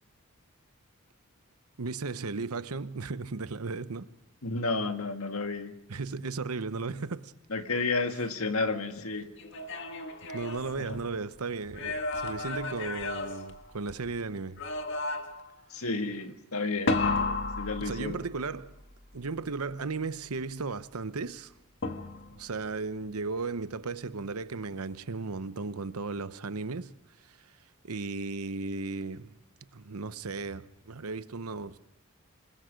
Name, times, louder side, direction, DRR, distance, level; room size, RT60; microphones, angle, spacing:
voice 1, 1.8-4.1 5.9-7.3 10.3-14.6 17.8-18.8 19.1-21.5 22.3-26.9 27.2-27.3 27.8-29.3 29.7-31.8, right 4 dB, 90° right, 0.9 m, -35 dB
voice 2, 4.4-5.7 7.5-9.3 10.9-11.0 15.7-17.0 17.6-18.2, left 3 dB, 75° left, 1.7 m, -31 dB
sound 1, 9.4-11.3 11.7-14.1 14.6-15.5 16.9-18.5 21.8-22.5, left 3 dB, 55° left, 1.7 m, -33 dB
28.0 x 20.0 x 5.2 m
head